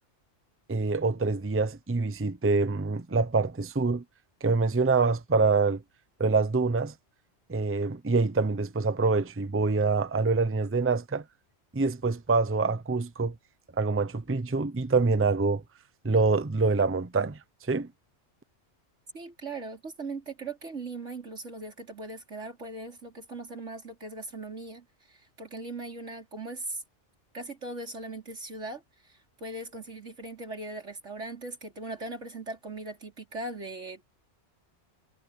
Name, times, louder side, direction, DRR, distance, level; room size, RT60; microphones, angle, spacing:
voice 1, 0.7-4.0 4.4-5.8 6.2-6.9 7.5-11.2 11.7-13.3 13.8-15.6 16.0-17.4 17.7-17.9, right 4 dB, 15° right, 0.6 m, -25 dB
voice 2, 19.1-26.8 27.3-34.0, right 2 dB, 90° right, 4.6 m, -39 dB
omnidirectional pair, 1.2 m